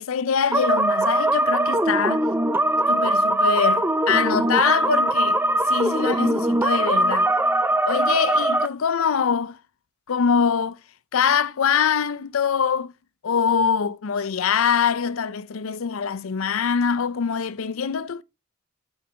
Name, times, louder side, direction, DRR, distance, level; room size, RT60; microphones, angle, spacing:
voice 1, 0.0-2.2 2.9-5.4 5.7-7.3 7.8-9.6 10.1-10.8 11.1-12.9 13.2-18.2, left 7 dB, 70° left, 0.5 m, -23 dB
sound 1, 0.5-8.7, right 1 dB, 10° right, 0.5 m, -21 dB
7.4 x 4.0 x 5.6 m
head